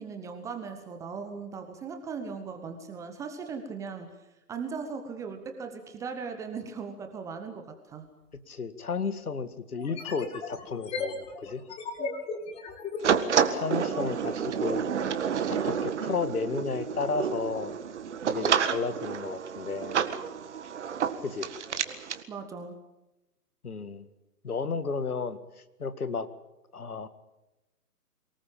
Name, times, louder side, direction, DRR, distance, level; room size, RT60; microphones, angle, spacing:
voice 1, 0.0-4.1 4.5-8.1 12.0-12.1 13.9-14.2 22.3-22.8, right 5 dB, 5° right, 6 dB, 0.9 m, -38 dB
sound 1, 8.3-8.4 9.8-13.7, left 4 dB, 10° left, 2.0 m, -36 dB
voice 2, 8.5-11.6 13.4-14.9 15.5-17.7 18.3-20.0 21.2-21.5 23.6-24.1 24.4-25.4 25.8-26.3 26.7-27.1, left 4 dB, 70° left, 12 dB, 2.1 m, -33 dB
sound 2, 13.0-22.2, right 7 dB, 45° right, 1.8 m, -29 dB
23.5 x 19.0 x 8.8 m, 0.99 s
figure-of-eight pair, 135°, 46 cm